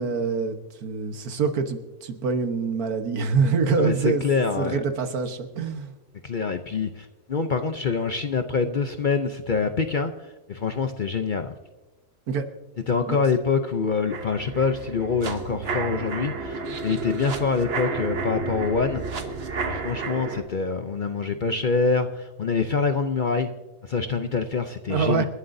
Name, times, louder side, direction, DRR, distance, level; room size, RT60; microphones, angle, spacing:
voice 1, 0.0-4.2 4.6-5.9 12.3-12.4 13.1-13.2 24.9-25.2, right 5 dB, 90° right, 7 dB, 1.6 m, -25 dB
voice 2, 3.8-4.8 6.2-11.5 12.9-19.2 19.7-23.5 23.8-25.2, left 4 dB, 50° left, 7 dB, 0.6 m, -25 dB
sound 1, 14.1-20.4, right 3 dB, 45° right, 1.2 m, -31 dB
28.0 x 11.5 x 2.7 m, 1.2 s
omnidirectional pair, 1.5 m